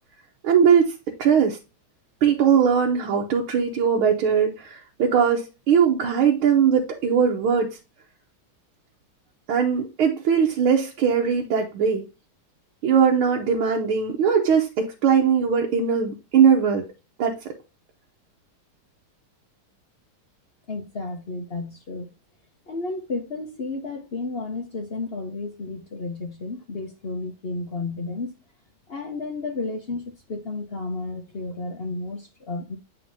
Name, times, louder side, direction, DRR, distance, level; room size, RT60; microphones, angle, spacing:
voice 1, 0.4-0.9 1.2-1.6 2.2-7.8 9.5-12.1 12.8-16.9 17.2-17.4, right 7 dB, 80° right, 1.7 m, -20 dB
voice 2, 20.7-22.1 22.7-28.3 28.9-30.0 30.3-32.8, left 3 dB, 60° left, 0.6 m, -32 dB
8.6 x 4.1 x 2.6 m
omnidirectional pair, 2.3 m